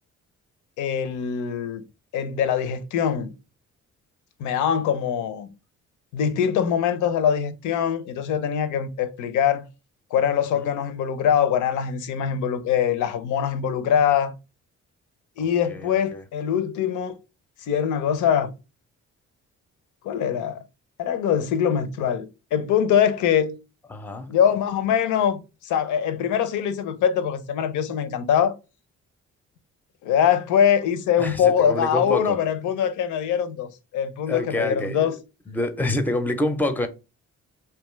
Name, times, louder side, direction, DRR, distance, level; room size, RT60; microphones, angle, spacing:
voice 1, 0.8-1.8 2.1-3.3 4.4-5.5 6.1-9.7 10.1-14.3 15.4-17.2 17.6-18.5 20.0-20.6 21.0-23.6 24.3-28.5 30.0-35.2, left 8 dB, 80° left, 0.5 m, -23 dB
voice 2, 15.4-16.2 23.9-24.3 31.2-32.4 34.3-35.1 35.5-36.9, left 1 dB, 5° left, 0.4 m, -27 dB
2.7 x 2.3 x 3.0 m
cardioid pair, 90°, 30 cm